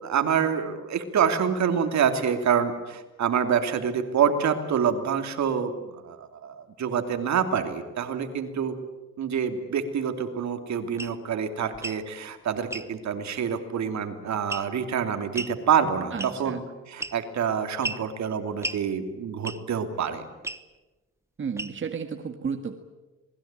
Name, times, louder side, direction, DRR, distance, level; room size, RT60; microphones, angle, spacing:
voice 1, 0.0-8.7 9.2-20.2, right 7 dB, 65° right, 7 dB, 3.0 m, -27 dB
sound 1, 11.0-11.2 11.7-12.0 12.7-12.9 14.5-14.8 15.3-15.6 16.2-16.5 17.0-17.4 17.8-18.1 18.6-18.8 19.4-19.7 20.4-20.6 21.6-21.9, right 2 dB, 10° right, 1.2 m, -34 dB
voice 2, 16.1-16.6 21.4-22.8, right 6 dB, 40° right, 6 dB, 1.9 m, -32 dB
26.5 x 20.0 x 9.0 m, 1.1 s
cardioid pair, 90°, 30 cm